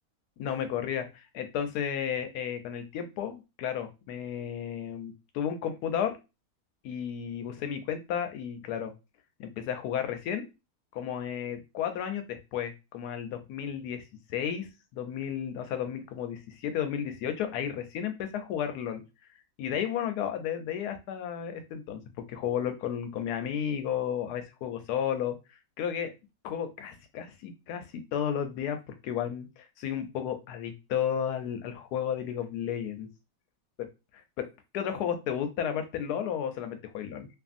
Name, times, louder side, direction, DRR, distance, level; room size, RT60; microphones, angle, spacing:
voice 1, 0.4-6.1 6.8-8.9 9.4-10.4 10.9-14.0 14.3-19.0 19.6-22.0 22.3-25.4 25.8-26.1 26.4-27.8 28.1-28.8 29.0-33.1 34.4-34.5 34.7-37.3, left 9 dB, 80° left, 7 dB, 1.1 m, -33 dB
2.7 x 2.6 x 2.4 m, 0.26 s
omnidirectional pair, 1.7 m